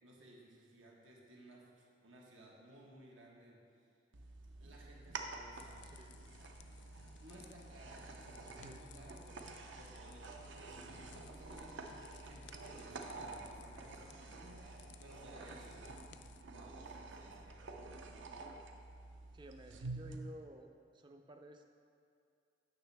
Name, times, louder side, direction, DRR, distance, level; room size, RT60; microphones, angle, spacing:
voice 1, 0.0-3.6 4.6-5.8 7.2-15.8 16.5-18.1, right 1 dB, 90° right, -3 dB, 1.3 m, -59 dB
sound 1, 4.1-20.2, right 3 dB, 70° right, 0.6 m, -49 dB
sound 2, 5.5-16.4, left 7 dB, 65° left, 0.3 m, -61 dB
voice 2, 5.8-6.2 8.4-8.8 19.3-21.6, right 1 dB, 25° right, 5 dB, 0.4 m, -54 dB
9.5 x 5.9 x 3.4 m, 2.4 s
head